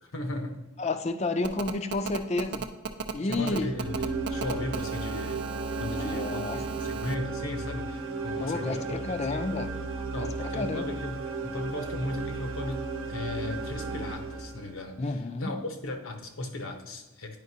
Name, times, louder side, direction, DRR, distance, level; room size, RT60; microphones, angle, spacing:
voice 1, 0.0-0.6 3.2-5.4 5.7-9.5 10.1-17.4, left 1 dB, 80° left, 5 dB, 0.9 m, -36 dB
voice 2, 0.8-2.6 3.1-3.7 6.0-6.6 8.4-9.7 10.2-10.3 10.6-10.9 15.0-15.5, left 2 dB, 30° left, 9 dB, 0.4 m, -30 dB
Telephone, 1.4-7.1, right 6 dB, 55° right, 0.4 m, -36 dB
sound 1, 3.5-14.9, right 3 dB, 80° right, 0.9 m, -35 dB
9.4 x 5.1 x 2.7 m, 1.1 s
head